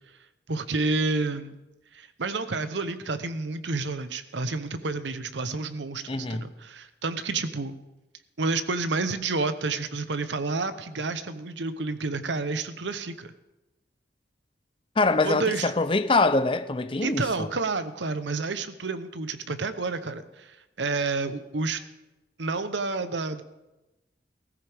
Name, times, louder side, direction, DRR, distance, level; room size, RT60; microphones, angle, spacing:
voice 1, 0.5-1.6 1.9-7.7 8.4-13.3 15.2-15.7 17.0-21.8 22.4-23.4, right 3 dB, 85° right, 0.9 m, -30 dB
voice 2, 6.1-6.5 15.0-17.5, left 3 dB, 30° left, 0.6 m, -24 dB
16.5 x 14.5 x 3.6 m
head